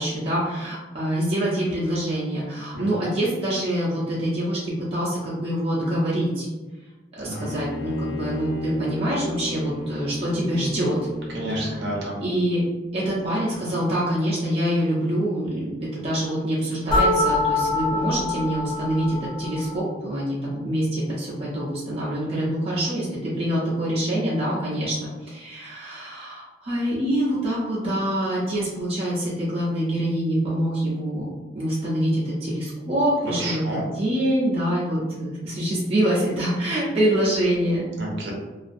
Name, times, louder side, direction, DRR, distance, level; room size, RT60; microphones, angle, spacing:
voice 1, 0.0-6.5 7.2-11.0 11.5-11.8 12.2-12.6 12.9-31.3 31.5-37.8, right 1 dB, 35° right, -8 dB, 0.6 m, -25 dB
Bowed string instrument, 7.3-12.1, left 2 dB, 65° left, 0.7 m, -34 dB
voice 2, 11.3-12.2 33.4-33.8 38.0-38.3, right 1 dB, 65° right, -3 dB, 0.7 m, -30 dB
sound 1, 16.9-19.8, left 2 dB, 25° left, 0.9 m, -24 dB
2.5 x 2.4 x 2.5 m, 1.2 s
head